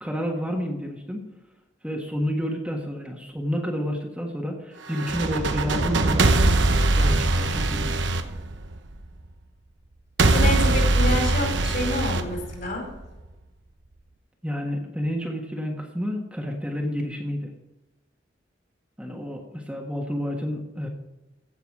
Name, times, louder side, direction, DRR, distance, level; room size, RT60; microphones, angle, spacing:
voice 1, 0.0-1.2 1.8-6.4 6.9-8.1 14.4-17.5 19.0-20.9, equal, 5° right, -1 dB, 1.6 m, -30 dB
sound 1, 4.9-9.0 10.2-13.0, right 2 dB, 75° right, 1.0 m, -22 dB
voice 2, 10.3-12.9, left 1 dB, 55° left, 0 dB, 5.1 m, -28 dB
16.0 x 7.3 x 4.8 m, 1.1 s
head